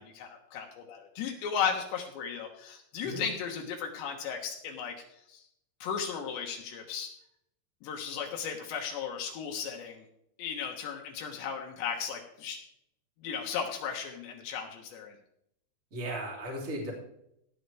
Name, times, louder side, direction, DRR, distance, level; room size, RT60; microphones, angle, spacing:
voice 1, 0.0-5.0 5.3-5.4 5.8-7.1 7.8-10.0 10.4-12.6 13.2-15.1, left 7 dB, 85° left, 1 dB, 3.6 m, -35 dB
voice 2, 15.9-16.9, right 1 dB, 20° right, -2 dB, 3.3 m, -36 dB
17.5 x 10.0 x 3.5 m, 0.73 s
omnidirectional pair, 4.9 m